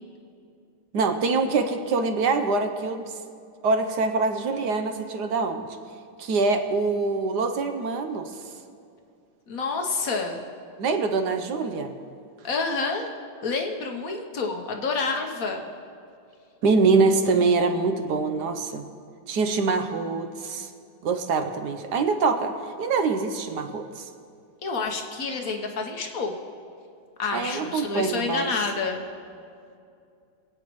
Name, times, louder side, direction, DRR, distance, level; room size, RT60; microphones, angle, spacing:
voice 1, 0.9-3.1 3.6-5.7 6.2-8.3 10.8-11.9 16.6-18.9 19.3-20.7 21.0-24.1 27.3-28.5, right 4 dB, 65° right, 6 dB, 1.2 m, -24 dB
voice 2, 9.5-10.4 12.4-13.1 13.4-15.6 24.6-26.3 27.2-29.0, left 4 dB, 50° left, 3 dB, 1.2 m, -28 dB
25.0 x 8.8 x 3.1 m, 2.4 s
omnidirectional pair, 2.3 m